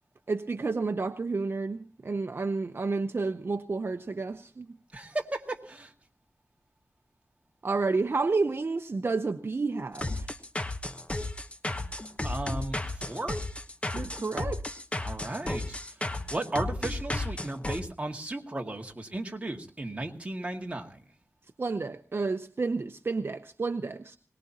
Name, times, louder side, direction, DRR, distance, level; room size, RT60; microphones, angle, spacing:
voice 1, 0.3-4.7 7.6-10.3 13.9-14.8 21.6-24.2, right 3 dB, 50° right, 8 dB, 0.7 m, -30 dB
voice 2, 4.9-5.9 12.2-13.4 15.0-21.0, right 2 dB, 25° right, 2 dB, 2.0 m, -35 dB
sound 1, 9.9-17.8, left 2 dB, 25° left, 1.1 m, -33 dB
22.0 x 19.5 x 2.9 m, 0.36 s
wide cardioid pair, 90°, 5 cm